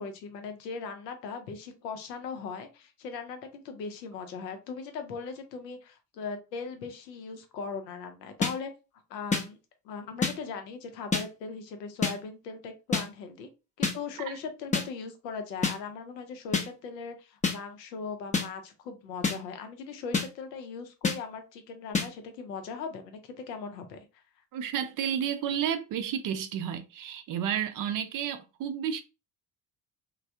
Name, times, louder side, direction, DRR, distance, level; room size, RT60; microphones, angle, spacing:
voice 1, 0.0-8.7 9.1-9.6 9.8-13.5 13.8-24.2, left 5 dB, 75° left, 0.7 m, -39 dB
sound 1, 8.4-8.5 9.3-9.4 10.2-10.3 11.1-11.2 12.0-12.1 12.9-13.0 13.8-13.9 14.7-14.8 15.6-15.8 16.5-16.7 17.4-17.6 18.3-18.5 19.2-19.4 20.1-20.3 21.0-21.2 21.9-22.1, left 4 dB, 15° left, 0.6 m, -26 dB
voice 2, 24.5-29.0, right 9 dB, 40° right, 0.5 m, -31 dB
3.1 x 2.2 x 2.6 m
figure-of-eight pair, 50°, 50 cm